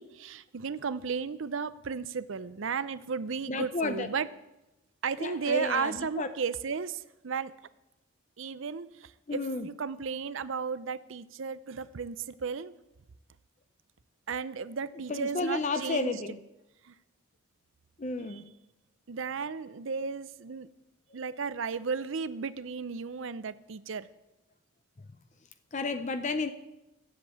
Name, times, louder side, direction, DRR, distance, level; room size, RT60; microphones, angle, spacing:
voice 1, 0.0-4.3 5.0-7.5 8.4-12.7 14.3-16.2 16.8-16.9 18.3-18.4 19.1-20.7 21.1-24.1, right 5 dB, 65° right, 0.5 m, -34 dB
voice 2, 3.5-4.1 5.2-6.3 9.3-9.7 15.1-16.4 18.0-18.5 25.7-26.5, left 3 dB, 35° left, 0.5 m, -32 dB
13.5 x 7.6 x 8.5 m
head